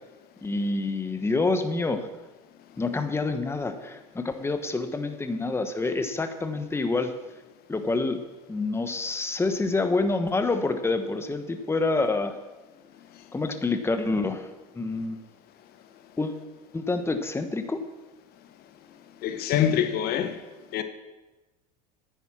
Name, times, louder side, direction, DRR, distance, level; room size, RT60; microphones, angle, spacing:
voice 1, 0.4-2.1 2.8-7.1 7.7-8.2 8.5-12.4 13.3-14.5 14.7-15.2 16.2-16.4 16.7-17.8, left 3 dB, 10° left, 1.1 m, -27 dB
voice 2, 19.2-20.4 20.7-20.8, left 9 dB, 50° left, 1.0 m, -25 dB
9.7 x 9.4 x 6.0 m
hypercardioid pair, 85°, 20 cm